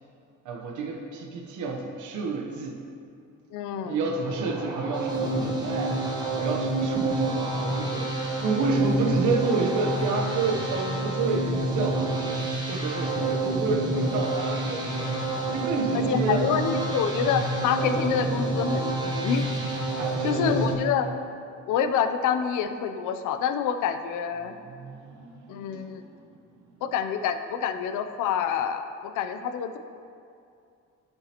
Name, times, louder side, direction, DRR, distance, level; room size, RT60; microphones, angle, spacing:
voice 1, 0.4-2.8 3.8-5.9 6.3-12.0 12.7-15.1 15.5-16.5 20.0-20.9 24.4-26.3, right 4 dB, 75° right, 0 dB, 0.9 m, -30 dB
voice 2, 3.5-4.0 15.9-19.5 20.2-21.1 21.7-24.5 25.5-26.0 26.8-29.8, left 7 dB, 90° left, 9 dB, 0.5 m, -27 dB
sound 1, 4.2-20.7, right 2 dB, 15° right, 1.3 m, -28 dB
11.0 x 6.7 x 2.9 m, 2.5 s
cardioid pair, 90°, 30 cm